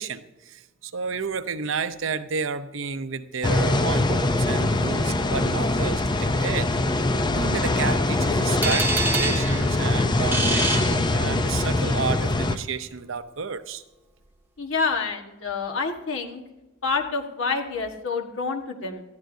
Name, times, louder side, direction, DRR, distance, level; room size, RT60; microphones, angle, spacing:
voice 1, 0.0-6.7 7.0-13.8, right 5 dB, 70° right, 11 dB, 0.7 m, -31 dB
sound 1, 3.4-12.6, left 2 dB, 20° left, 0.5 m, -23 dB
sound 2, 8.6-11.7, right 3 dB, 10° right, 1.2 m, -27 dB
voice 2, 14.6-16.4 16.8-19.0, left 4 dB, 75° left, 3 dB, 1.5 m, -28 dB
19.5 x 13.5 x 2.7 m, 1.1 s
head